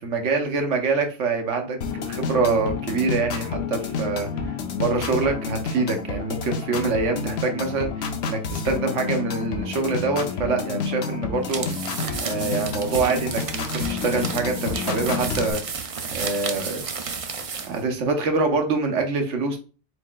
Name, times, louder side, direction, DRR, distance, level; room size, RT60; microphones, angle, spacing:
voice 1, 0.0-11.6 12.2-16.8 17.6-19.6, right 4 dB, 75° right, 5 dB, 1.2 m, -25 dB
sound 1, 1.8-15.5, left 5 dB, 65° left, 0.9 m, -29 dB
sound 2, 11.4-17.8, right 5 dB, 45° right, 0.4 m, -32 dB
4.6 x 4.2 x 2.2 m, 0.35 s
omnidirectional pair, 1.2 m